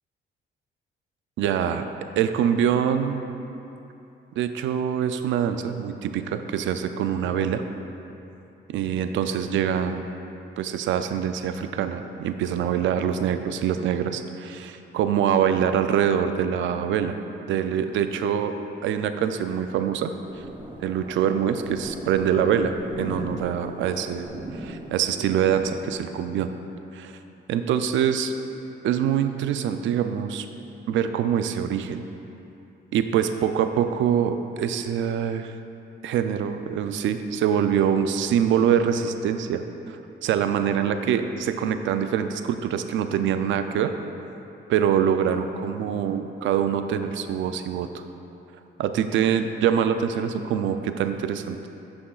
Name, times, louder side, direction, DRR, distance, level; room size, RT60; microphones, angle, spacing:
voice 1, 1.4-1.8 2.2-3.2 4.4-7.6 8.7-10.1 10.6-17.2 17.5-18.5 18.8-20.1 20.8-26.5 26.9-27.1 27.5-28.3 28.8-30.5 30.9-32.0 32.9-35.5 36.0-40.0 40.2-43.9 44.7-48.0 48.8-51.7, right 8 dB, 75° right, 9 dB, 0.4 m, -24 dB
sound 1, 20.2-26.0, right 1 dB, 25° right, 0.8 m, -38 dB
9.5 x 6.2 x 2.4 m, 2.9 s
cardioid pair, 90°, 20 cm